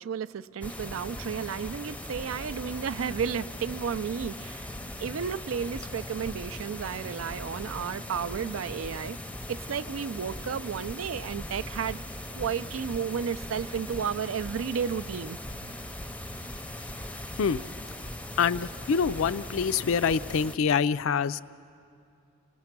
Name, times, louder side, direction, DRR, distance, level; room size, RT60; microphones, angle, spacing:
voice 1, 0.0-4.7 5.0-9.2 9.5-12.0 12.3-15.4, right 7 dB, 75° right, 0.4 m, -32 dB
sound 1, 0.6-20.6, left 1 dB, 5° left, 0.6 m, -39 dB
voice 2, 18.4-21.4, left 6 dB, 70° left, 0.4 m, -25 dB
28.5 x 18.0 x 6.0 m
head